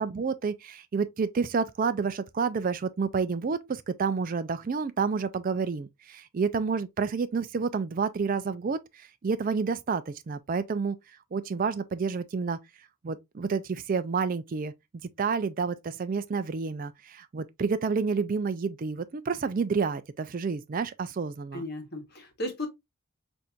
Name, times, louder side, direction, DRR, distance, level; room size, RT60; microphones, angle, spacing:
voice 1, 0.0-11.0 11.3-12.6 13.0-14.7 15.2-21.6, right 5 dB, 40° right, 0.3 m, -29 dB
voice 2, 21.5-22.7, left 1 dB, 45° left, 1.1 m, -35 dB
5.8 x 2.6 x 2.3 m
head